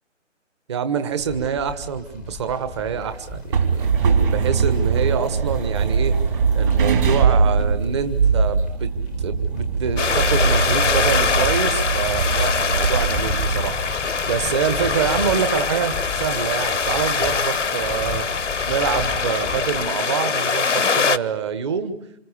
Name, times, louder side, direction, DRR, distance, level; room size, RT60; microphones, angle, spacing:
voice 1, 0.7-8.9 9.2-18.3 18.7-22.0, right 7 dB, 20° right, 11 dB, 1.4 m, -26 dB
sound 1, 1.2-19.9, left 2 dB, ahead, 1.0 m, -35 dB
sound 2, 3.3-13.7, right 5 dB, 40° right, 3.8 m, -21 dB
sound 3, 10.0-21.2, left 5 dB, 70° left, 1.0 m, -23 dB
28.5 x 26.5 x 7.2 m, 0.71 s
figure-of-eight pair, 150°, 38 cm